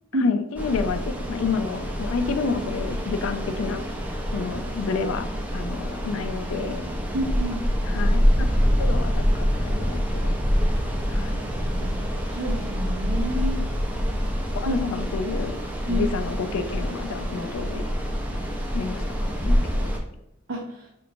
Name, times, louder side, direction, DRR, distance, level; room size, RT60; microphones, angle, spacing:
voice 1, 0.2-3.8 4.3-5.3 5.5-6.9 7.8-10.3 11.1-11.4 14.5-15.6 15.9-17.8 18.7-19.0 19.4-19.9, left 5 dB, 70° left, 9 dB, 0.4 m, -29 dB
sound 1, 0.6-20.0, equal, 10° right, 0.4 m, -26 dB
voice 2, 7.1-7.6 11.6-13.7 14.7-14.8 15.9-16.1 20.5-20.9, equal, 80° right, -1 dB, 0.6 m, -29 dB
5.2 x 2.9 x 2.5 m, 0.82 s
head